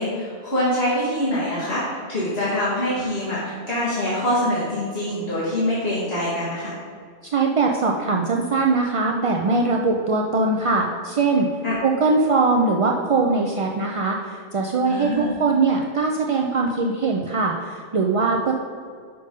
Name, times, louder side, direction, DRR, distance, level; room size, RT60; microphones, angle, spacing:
voice 1, 0.0-6.8 11.6-11.7 14.9-15.3, left 1 dB, 60° left, -10 dB, 2.2 m, -24 dB
voice 2, 7.3-11.5 11.8-18.5, right 3 dB, 50° right, 1 dB, 0.4 m, -21 dB
6.9 x 5.3 x 5.2 m, 2.1 s
omnidirectional pair, 1.2 m